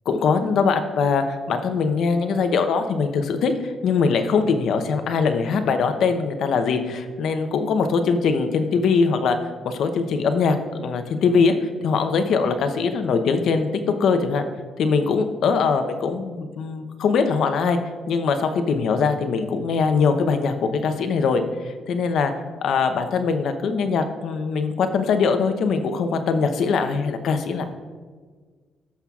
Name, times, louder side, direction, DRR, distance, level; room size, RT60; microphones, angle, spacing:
voice 1, 0.1-9.4 9.6-13.7 14.0-14.5 14.8-17.8 18.1-20.5 20.8-22.3 22.6-27.6, left 5 dB, 70° left, 8 dB, 0.7 m, -22 dB
15.5 x 5.7 x 2.4 m, 1.5 s
cardioid pair, 90°, 0 cm